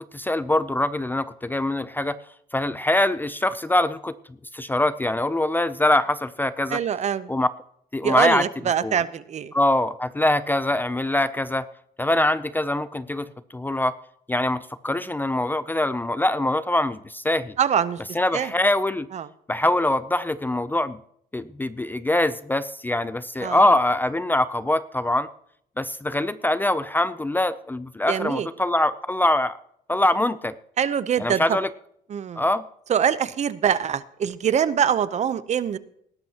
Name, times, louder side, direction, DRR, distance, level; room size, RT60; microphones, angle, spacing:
voice 1, 0.1-2.2 2.5-4.1 4.5-6.8 7.3-7.5 7.9-8.4 8.8-9.0 9.5-11.7 12.0-13.9 14.3-17.5 18.2-19.1 19.5-21.0 21.3-25.3 25.8-29.6 29.9-30.5 31.2-31.7 32.4-32.6, left 1 dB, 10° left, 14 dB, 0.5 m, -23 dB
voice 2, 6.7-7.3 8.0-9.5 17.6-18.0 18.3-18.5 19.1-19.3 23.4-23.6 28.1-28.5 30.8-31.6 32.1-32.4 32.9-35.8, right 8 dB, 40° right, 15 dB, 0.8 m, -24 dB
19.5 x 12.0 x 2.9 m, 0.70 s
cardioid pair, 110°, 17 cm